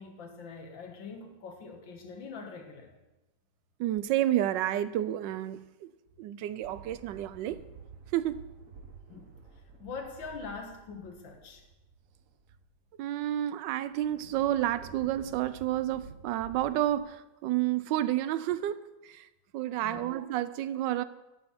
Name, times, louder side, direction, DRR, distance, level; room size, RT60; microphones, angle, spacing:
voice 1, 0.0-2.9 9.1-9.3 9.8-11.6 19.8-20.1, left 4 dB, 80° left, 2.1 m, -43 dB
voice 2, 3.8-5.9 6.2-7.6 8.1-8.5 13.0-19.3 19.5-21.0, right 13 dB, 75° right, 1.2 m, -30 dB
sound 1, 6.6-12.8 13.3-13.4 13.9-17.0, right 5 dB, 45° right, 1.4 m, -51 dB
13.0 x 6.6 x 5.7 m
omnidirectional pair, 2.1 m